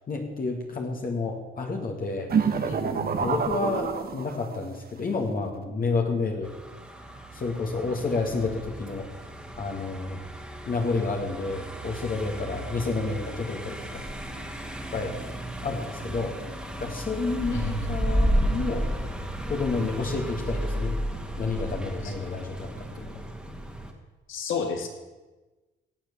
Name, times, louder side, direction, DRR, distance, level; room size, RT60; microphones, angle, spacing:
voice 1, 0.1-2.3 2.6-2.7 3.2-6.5 7.3-9.1 9.6-10.2 10.7-14.0 14.9-15.1 15.6-16.3 16.8-18.9 19.5-20.9 21.4-22.7 23.0-23.1, left 3 dB, 45° left, 1 dB, 2.1 m, -30 dB
voice 2, 2.3-3.2 17.5-18.0 22.0-22.1 24.3-24.9, left 4 dB, 80° left, 4 dB, 2.5 m, -32 dB
sound 1, 2.3-4.7, right 6 dB, 50° right, 1.4 m, -27 dB
Car passing by, 6.4-23.9, equal, 5° right, 2.1 m, -33 dB
17.5 x 7.6 x 7.0 m, 1.2 s
cardioid pair, 90°, 20 cm